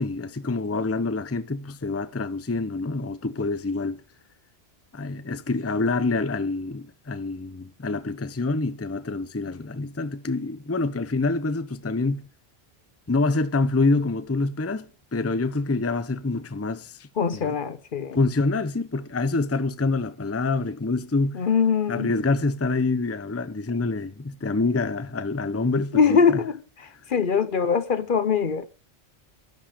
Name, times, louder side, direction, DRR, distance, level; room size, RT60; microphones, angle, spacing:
voice 1, 0.0-4.0 4.9-12.3 13.1-17.6 18.1-21.5 21.9-26.4, left 3 dB, 15° left, 0.7 m, -26 dB
voice 2, 17.2-18.2 21.3-22.1 25.9-26.5 27.1-28.7, left 6 dB, 55° left, 1.0 m, -22 dB
13.0 x 11.5 x 5.0 m
omnidirectional pair, 1.1 m